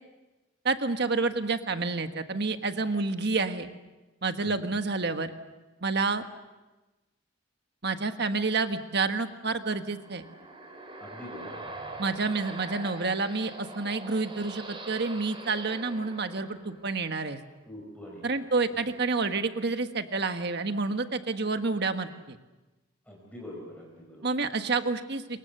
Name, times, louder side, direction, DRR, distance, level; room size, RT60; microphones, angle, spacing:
voice 1, 0.6-3.7 4.2-5.3 5.8-6.2 7.8-10.2 12.0-17.4 18.2-22.4 24.2-25.4, right 3 dB, 55° right, 8 dB, 1.5 m, -29 dB
sound 1, 9.6-17.1, right 2 dB, 25° right, 4.0 m, -43 dB
voice 2, 11.0-11.7 17.7-18.4 18.7-18.8 23.1-24.3, left 1 dB, 5° left, -2 dB, 4.6 m, -44 dB
27.5 x 23.0 x 6.8 m, 1.1 s
head